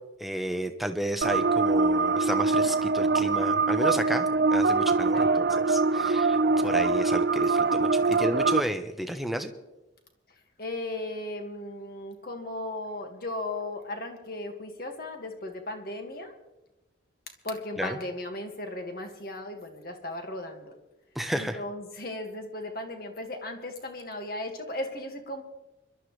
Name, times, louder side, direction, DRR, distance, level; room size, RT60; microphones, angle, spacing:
voice 1, 0.2-6.4 6.6-9.5 17.8-18.0 21.1-21.6, right 1 dB, ahead, 6 dB, 0.9 m, -32 dB
sound 1, 1.2-8.6, right 3 dB, 60° right, 0.4 m, -23 dB
voice 2, 10.6-16.3 17.4-20.7 21.3-25.4, left 1 dB, 50° left, 4 dB, 1.9 m, -36 dB
25.0 x 12.0 x 3.3 m, 0.99 s
head